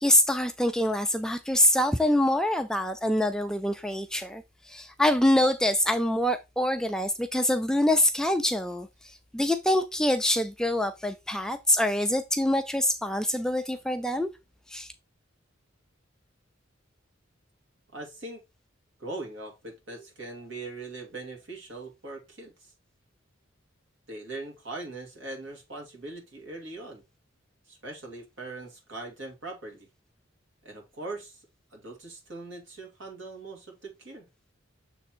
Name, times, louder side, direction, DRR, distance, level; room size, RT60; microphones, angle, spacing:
voice 1, 0.0-4.4 4.7-8.9 9.3-14.3 14.7-14.9, left 1 dB, 5° left, 0.4 m, -25 dB
voice 2, 17.9-18.4 19.0-22.7 24.1-27.0 27.7-29.9 30.6-31.5 31.7-34.3, right 2 dB, 65° right, 2.6 m, -41 dB
7.0 x 3.4 x 4.4 m
head